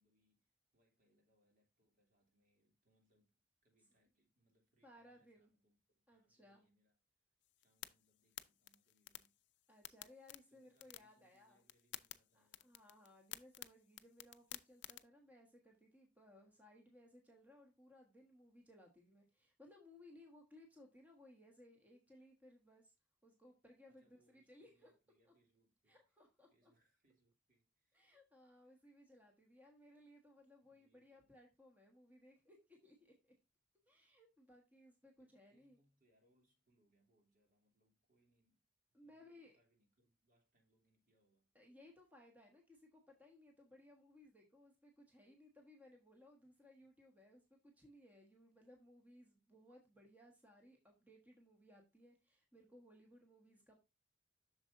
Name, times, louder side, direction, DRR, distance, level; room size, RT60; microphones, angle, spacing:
voice 1, 0.0-3.3 3.6-7.0 7.6-9.4 10.5-12.8 23.9-26.2 26.5-28.0 28.6-28.8 30.6-31.3 35.2-38.6 39.0-41.5, right 1 dB, 45° right, 2.8 m, -80 dB
voice 2, 4.8-5.5 6.1-6.6 9.7-11.6 12.3-22.9 23.2-24.9 25.9-26.7 27.9-33.3 33.9-35.8 38.9-39.5 41.5-53.8, left 1 dB, 10° right, 1.4 m, -63 dB
sound 1, 7.4-15.0, left 14 dB, 65° left, 0.5 m, -55 dB
7.8 x 6.6 x 2.6 m
head